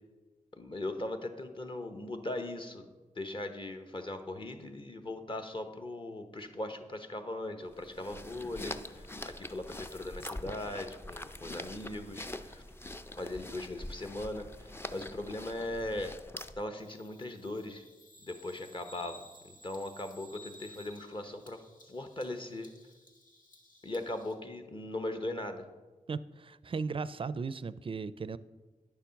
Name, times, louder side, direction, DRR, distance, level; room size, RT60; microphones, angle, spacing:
voice 1, 0.6-2.9 3.1-12.6 13.2-16.2 16.6-17.8 18.2-21.6 21.9-22.7 23.8-25.7, left 1 dB, 40° left, 7 dB, 1.1 m, -39 dB
Apple Ruminating, 7.7-16.7, left 1 dB, 15° left, 0.5 m, -44 dB
Bird vocalization bird call bird song, 16.8-24.3, left 1 dB, 85° left, 1.3 m, -56 dB
voice 2, 26.1-28.4, right 4 dB, 40° right, 16 dB, 0.4 m, -36 dB
9.7 x 7.0 x 5.8 m, 1.2 s
cardioid pair, 65°, 14 cm